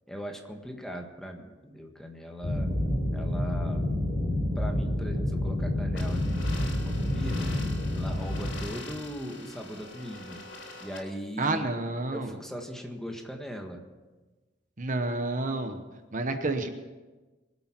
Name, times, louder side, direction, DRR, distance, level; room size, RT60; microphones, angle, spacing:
voice 1, 0.1-2.7 3.1-3.9 4.6-7.5 8.0-10.4 10.8-11.7 12.1-13.8, equal, 5° left, 2 dB, 1.6 m, -39 dB
sound 1, 2.4-8.7, left 1 dB, 50° left, 4.6 m, -29 dB
sound 2, 5.9-11.0, left 3 dB, 85° left, 3.5 m, -44 dB
voice 2, 11.4-12.3 14.8-15.8 16.1-16.7, right 2 dB, 45° right, 7 dB, 1.0 m, -29 dB
23.5 x 8.3 x 6.0 m, 1.2 s
head